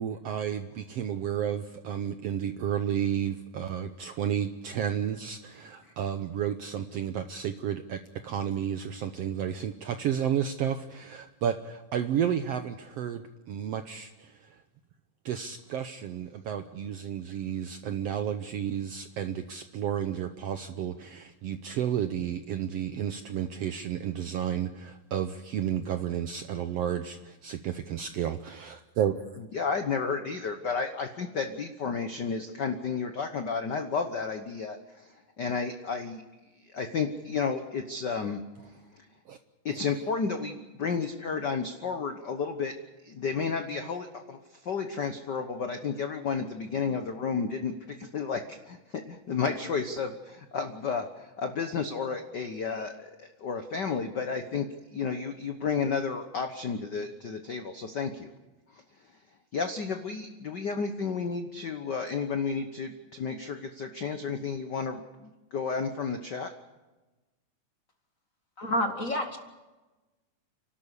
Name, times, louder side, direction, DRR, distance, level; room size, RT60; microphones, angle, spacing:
voice 1, 0.0-14.6 15.2-29.4 39.3-39.4, right 9 dB, 75° right, 9 dB, 1.5 m, -32 dB
voice 2, 29.5-36.2 36.7-38.4 39.0-39.1 39.6-42.7 43.0-58.3 58.7-58.8 59.5-66.5, left 5 dB, 75° left, 7 dB, 0.9 m, -32 dB
voice 3, 68.6-69.4, left 1 dB, 35° left, 5 dB, 1.5 m, -28 dB
29.5 x 12.5 x 8.2 m, 1.1 s
omnidirectional pair, 3.7 m